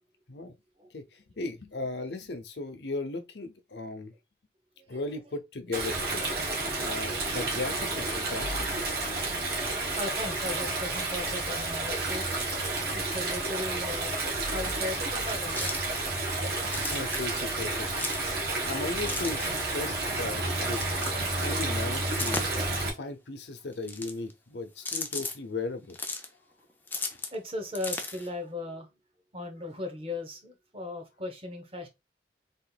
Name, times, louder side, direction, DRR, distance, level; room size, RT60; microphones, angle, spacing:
voice 1, 1.4-4.1 4.9-6.2 6.8-8.7 16.5-18.1 18.6-20.8 21.3-22.4 22.9-26.0, left 2 dB, 70° left, 0.8 m, -36 dB
Stream, 5.7-22.9, right 2 dB, 60° right, 1.5 m, -31 dB
voice 2, 9.4-12.3 12.9-14.2 14.5-15.7 27.3-28.9 29.3-31.9, left 1 dB, 30° right, 1.1 m, -37 dB
sound 1, 15.5-16.0 16.6-17.3 17.9-18.3 19.0-19.6 20.8-21.1 22.1-22.7 23.7-24.3 24.8-25.4 25.9-26.3 26.9-27.3 27.7-28.3, left 3 dB, 10° left, 0.5 m, -35 dB
3.7 x 2.5 x 4.0 m
head